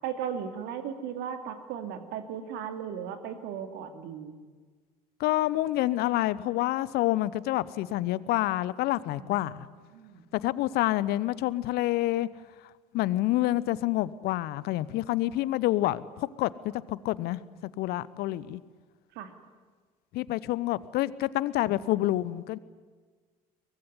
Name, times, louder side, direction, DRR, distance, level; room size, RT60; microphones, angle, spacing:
voice 1, 0.0-4.3 9.2-9.7 9.9-10.2 19.1-19.3, right 8 dB, 60° right, 8 dB, 2.6 m, -36 dB
voice 2, 5.2-9.7 10.3-12.3 12.9-17.4 17.8-18.6 20.1-22.6, left 16 dB, 55° left, 19 dB, 0.9 m, -28 dB
23.5 x 20.0 x 9.7 m, 1.4 s
figure-of-eight pair, 60°, 19 cm